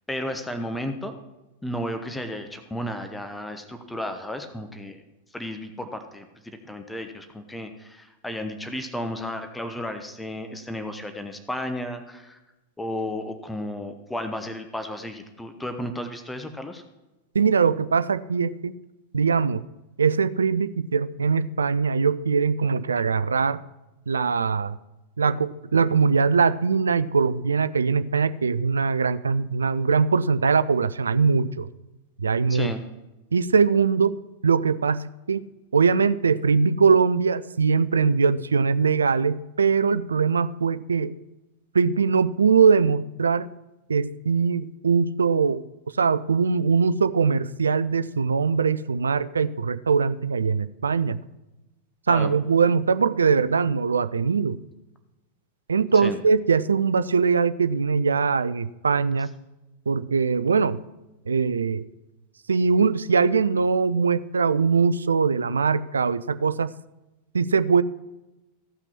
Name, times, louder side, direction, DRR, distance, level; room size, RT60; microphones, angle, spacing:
voice 1, 0.1-1.2 1.6-5.0 5.3-12.4 12.8-16.8 32.5-32.8 52.1-52.4 56.0-56.2, left 1 dB, 5° left, 7 dB, 0.9 m, -33 dB
voice 2, 17.3-18.8 19.1-19.6 20.0-23.6 24.1-24.8 25.2-31.7 32.2-32.7 33.3-34.2 34.4-35.5 35.7-41.1 41.7-43.5 43.9-45.6 46.0-51.2 52.1-54.6 55.7-59.3 59.9-60.8 61.3-61.8 62.5-66.7 67.3-67.8, right 5 dB, 75° right, 15 dB, 0.4 m, -21 dB
14.5 x 5.9 x 5.9 m, 1.0 s
figure-of-eight pair, 90°, 0 cm